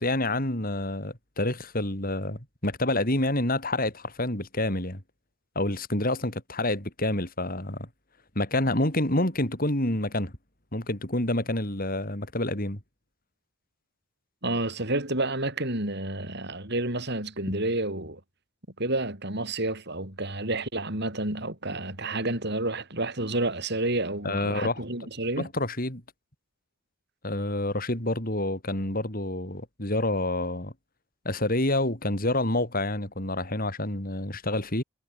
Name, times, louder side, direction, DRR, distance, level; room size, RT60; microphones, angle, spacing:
voice 1, 0.0-5.0 5.5-7.9 8.3-10.3 10.7-12.8 24.2-24.8 25.4-26.0 27.2-30.7 31.2-34.8, left 1 dB, 45° left, 6.1 m, -28 dB
voice 2, 14.4-18.2 18.8-25.5, right 2 dB, 55° right, 7.9 m, -30 dB
head